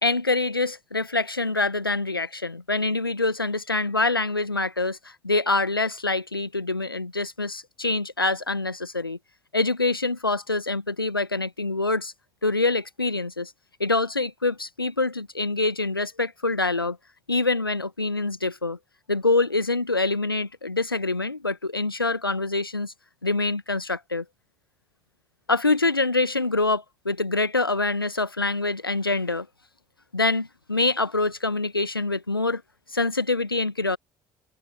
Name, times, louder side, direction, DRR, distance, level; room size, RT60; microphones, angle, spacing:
voice 1, 0.0-9.2 9.5-12.1 12.4-13.5 13.8-17.0 17.3-18.8 19.1-22.9 23.2-24.2 25.5-29.5 30.1-32.6 32.9-34.0, left 3 dB, 90° left, 1.4 m, -25 dB
figure-of-eight pair, 50°, 12 cm